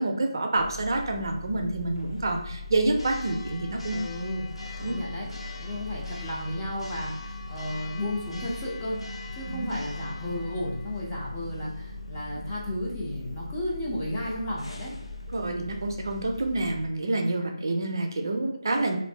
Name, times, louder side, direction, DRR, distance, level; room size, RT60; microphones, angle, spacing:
voice 1, 0.0-4.0 4.8-5.0 9.5-9.7 15.3-19.0, right 2 dB, 45° right, 3 dB, 0.4 m, -28 dB
Church bell, 0.6-16.9, left 3 dB, 70° left, 0.6 m, -39 dB
voice 2, 3.9-4.5 4.8-5.3 5.6-9.0 9.3-14.9, left 1 dB, 15° left, -5 dB, 0.4 m, -33 dB
2.6 x 2.5 x 3.3 m, 0.74 s
figure-of-eight pair, 170°, 3 cm